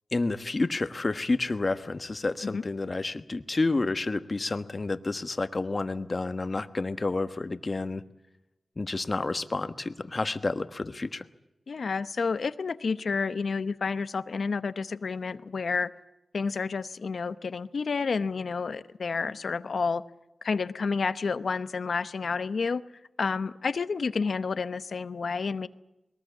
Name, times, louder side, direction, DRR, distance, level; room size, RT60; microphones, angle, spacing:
voice 1, 0.1-8.0 8.8-11.3, left 3 dB, 45° left, 10 dB, 1.3 m, -30 dB
voice 2, 11.7-15.9 16.3-20.0 20.4-22.8 23.2-25.7, left 5 dB, 75° left, 13 dB, 0.8 m, -30 dB
21.5 x 19.0 x 8.5 m, 0.94 s
cardioid pair, 55°, 0 cm